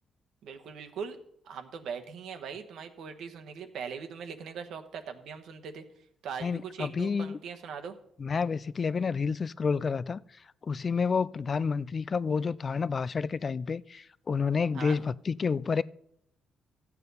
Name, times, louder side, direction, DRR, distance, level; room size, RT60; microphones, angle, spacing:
voice 1, 0.4-1.2 1.4-5.8 6.2-8.0 14.7-15.0, right 6 dB, 75° right, 1.2 m, -40 dB
voice 2, 6.4-7.4 8.2-10.2 10.6-15.8, left 5 dB, 40° left, 0.3 m, -29 dB
14.0 x 8.4 x 4.1 m
cardioid pair, 90°, 0 cm